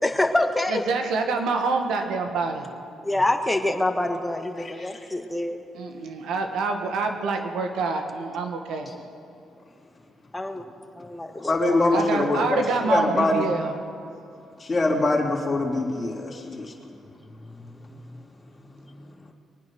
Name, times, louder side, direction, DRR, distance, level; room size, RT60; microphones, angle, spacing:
voice 1, 0.0-0.8 3.0-5.6 10.3-10.6 11.4-11.8 17.5-18.0, left 1 dB, 10° left, 5 dB, 1.5 m, -26 dB
voice 2, 0.7-2.7 5.7-8.9 11.9-13.7, right 4 dB, 80° right, 4 dB, 1.8 m, -26 dB
voice 3, 4.6-4.9 11.5-13.5 14.6-16.7, left 2 dB, 30° left, -2 dB, 3.2 m, -24 dB
23.5 x 9.5 x 6.2 m, 2.6 s
cardioid pair, 90°, 0 cm